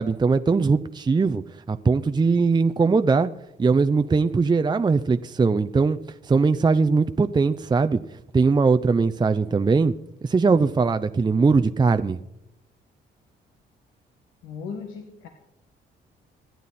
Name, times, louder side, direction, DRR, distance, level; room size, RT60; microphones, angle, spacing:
voice 1, 0.0-1.4 1.7-3.3 3.6-6.0 6.2-8.0 8.3-9.9 10.2-12.2, right 4 dB, 20° right, 9 dB, 0.6 m, -20 dB
voice 2, 14.4-15.3, left 5 dB, 90° left, 4 dB, 1.8 m, -37 dB
26.5 x 10.5 x 4.2 m, 0.87 s
cardioid pair, 90°, 20 cm